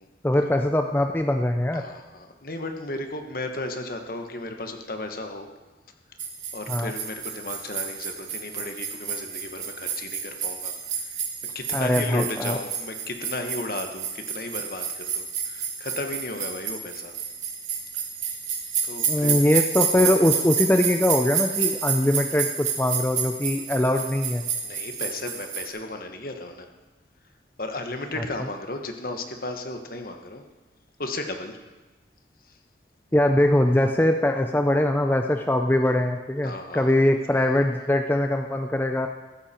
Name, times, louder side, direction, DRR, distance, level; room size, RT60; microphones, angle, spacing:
voice 1, 0.2-1.8 6.7-6.9 11.7-12.6 19.1-24.4 28.2-28.3 33.1-39.1, left 1 dB, 10° left, 4 dB, 0.5 m, -22 dB
voice 2, 1.7-5.5 6.5-11.2 11.5-17.1 18.8-19.4 24.6-26.7 27.6-30.4 31.0-31.6 32.5-32.6 36.4-36.9, left 2 dB, 50° left, 5 dB, 1.4 m, -34 dB
sound 1, 6.2-25.7, right 7 dB, 40° right, 1.7 m, -30 dB
15.5 x 13.0 x 4.4 m, 1.2 s
head